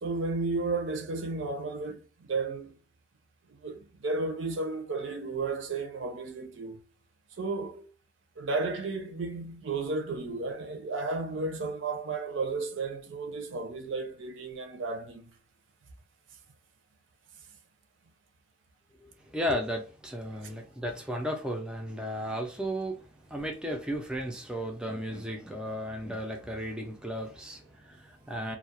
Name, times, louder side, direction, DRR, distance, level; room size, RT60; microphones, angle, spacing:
voice 1, 0.0-2.7 3.6-6.8 7.4-7.9 8.4-15.3, right 3 dB, 75° right, 0.5 m, -33 dB
voice 2, 19.3-28.6, equal, 5° right, 0.3 m, -34 dB
2.3 x 2.0 x 2.8 m
head